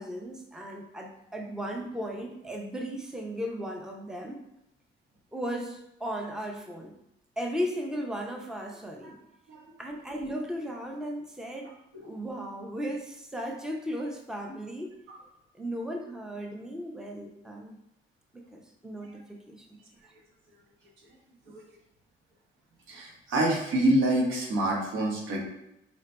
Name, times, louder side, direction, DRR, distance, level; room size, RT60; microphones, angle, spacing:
voice 1, 0.0-4.4 5.3-6.9 7.4-9.2 9.8-11.7 12.1-14.9 15.6-17.7 18.3-19.7, equal, 5° right, 1 dB, 0.7 m, -36 dB
voice 2, 22.9-25.4, right 1 dB, 80° right, -2 dB, 1.3 m, -27 dB
5.0 x 2.7 x 3.3 m, 0.85 s
cardioid pair, 90°, 20 cm